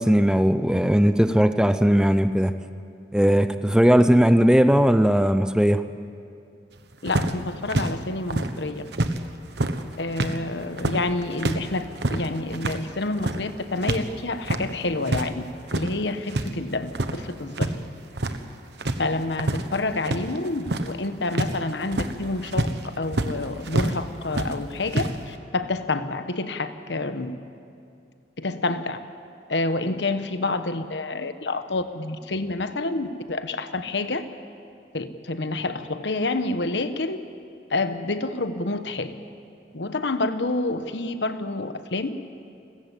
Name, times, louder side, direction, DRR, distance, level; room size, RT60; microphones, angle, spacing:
voice 1, 0.0-2.5 3.1-5.8, equal, 5° right, 10 dB, 0.6 m, -18 dB
voice 2, 7.0-8.8 10.0-15.4 15.7-17.7 19.0-27.4 28.4-29.0 29.5-34.2 34.9-37.2 37.7-39.1 39.7-42.2, left 2 dB, 75° left, 10 dB, 1.2 m, -28 dB
sound 1, 7.1-9.2 9.5-14.1 14.3-15.3 15.6-16.5 16.8-17.8 18.0-18.5 18.8-24.0 24.3-25.2, right 1 dB, 70° right, 1.3 m, -27 dB
29.5 x 14.0 x 8.5 m, 2.5 s
head